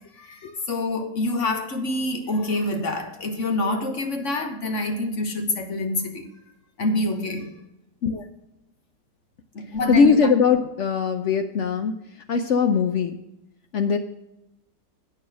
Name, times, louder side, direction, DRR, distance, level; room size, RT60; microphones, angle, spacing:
voice 1, 0.2-6.3 6.8-7.6 9.5-10.2, left 2 dB, 45° left, 1.5 m, -26 dB
voice 2, 9.9-12.0 12.3-13.2 13.7-14.0, left 5 dB, 70° left, 0.7 m, -20 dB
8.5 x 6.6 x 6.1 m
omnidirectional pair, 1.9 m